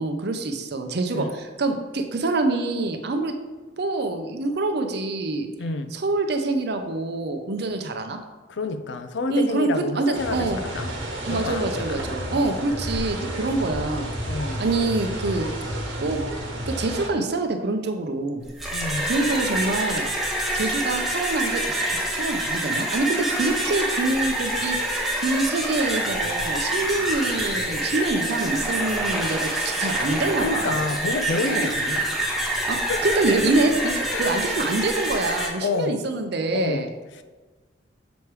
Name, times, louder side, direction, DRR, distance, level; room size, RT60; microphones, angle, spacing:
voice 1, 0.0-3.3 3.8-5.5 5.9-8.2 9.3-10.6 11.3-14.1 14.6-15.5 16.0-16.2 16.7-18.5 19.1-20.0 20.5-21.8 22.1-30.8 31.5-31.7 32.7-36.9, right 2 dB, 60° right, 6 dB, 0.6 m, -25 dB
voice 2, 5.6-5.9 8.5-10.9 11.2-12.6 14.3-14.7 18.7-19.1 30.4-32.2 32.9-33.2 33.8-34.3 35.6-36.0 36.5-37.2, left 3 dB, 70° left, 10 dB, 0.5 m, -29 dB
sound 1, 10.1-17.1, right 1 dB, 85° right, 1.2 m, -31 dB
sound 2, 18.4-35.5, right 1 dB, ahead, 0.8 m, -26 dB
7.1 x 3.2 x 4.7 m, 1.3 s
head